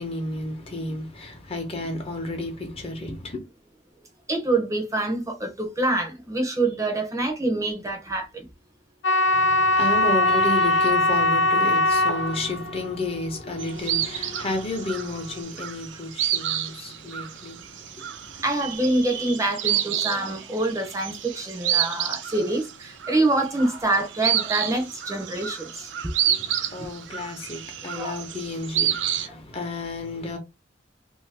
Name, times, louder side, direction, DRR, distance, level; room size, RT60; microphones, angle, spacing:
voice 1, 0.0-3.4 9.3-18.4 26.2-30.4, left 2 dB, 35° left, 0.9 m, -32 dB
voice 2, 4.3-8.5 10.2-10.4 18.4-25.9 26.8-26.9 27.9-28.2, right 2 dB, 15° right, 0.7 m, -26 dB
sound 1, 9.0-15.2, left 1 dB, 85° left, 0.6 m, -22 dB
sound 2, 13.6-29.3, right 10 dB, 80° right, 0.5 m, -29 dB
2.7 x 2.7 x 3.3 m
head